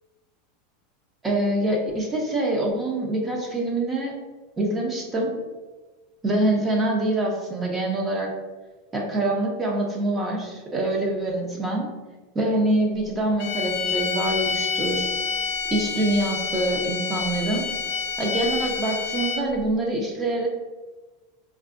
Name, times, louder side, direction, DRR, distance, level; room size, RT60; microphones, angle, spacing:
voice 1, 1.2-4.1 4.6-5.3 6.2-8.3 8.9-11.9 12.3-15.1 15.7-17.7 18.2-20.5, right 1 dB, 15° right, 0 dB, 0.4 m, -25 dB
sound 1, 13.4-19.6, left 5 dB, 60° left, 0.4 m, -28 dB
3.4 x 2.2 x 2.4 m, 1.2 s
supercardioid pair, 160°, 0 cm